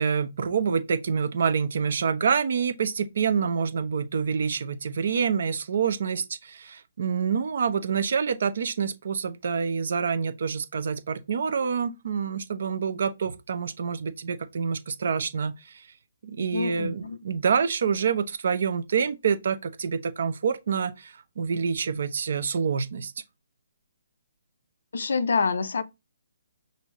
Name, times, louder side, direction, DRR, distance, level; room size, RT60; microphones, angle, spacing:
voice 1, 0.0-15.9 16.2-23.1, right 6 dB, 60° right, 0.7 m, -27 dB
voice 2, 16.5-17.2 24.9-25.8, left 5 dB, 65° left, 0.6 m, -26 dB
5.5 x 2.7 x 3.1 m
figure-of-eight pair, 140°, 0 cm